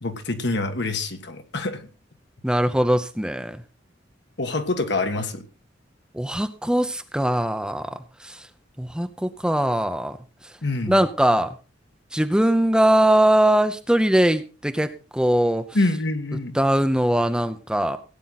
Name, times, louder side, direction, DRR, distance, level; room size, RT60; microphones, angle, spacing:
voice 1, 0.0-1.9 4.4-5.4 10.6-11.0 15.7-16.6, left 2 dB, 60° left, 7 dB, 1.6 m, -26 dB
voice 2, 2.4-3.6 6.1-7.9 8.2-8.5 8.8-10.2 10.9-11.5 12.1-15.6 16.5-18.0, right 1 dB, 5° right, 8 dB, 0.7 m, -21 dB
17.0 x 9.0 x 4.1 m, 0.34 s
head